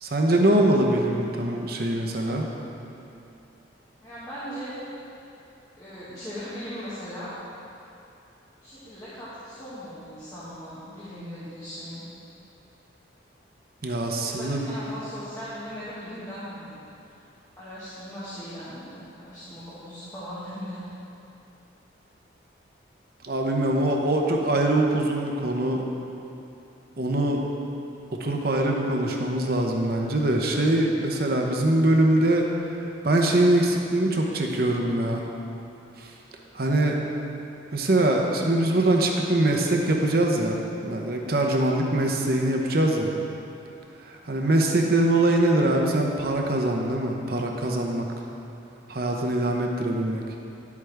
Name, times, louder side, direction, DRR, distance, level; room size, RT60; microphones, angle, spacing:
voice 1, 0.0-2.5 13.8-14.7 23.2-25.8 27.0-27.4 28.2-32.5 32.8-35.2 36.0-36.1 36.5-36.9 37.7-43.1 44.0-48.0 48.9-50.2, right 1 dB, 50° right, 1 dB, 0.8 m, -23 dB
voice 2, 4.0-5.2 5.8-7.3 8.6-12.0 14.2-17.2 17.6-20.9 44.3-44.6 44.9-45.2, equal, 20° left, -12 dB, 1.5 m, -39 dB
10.5 x 8.2 x 3.4 m, 2.8 s
head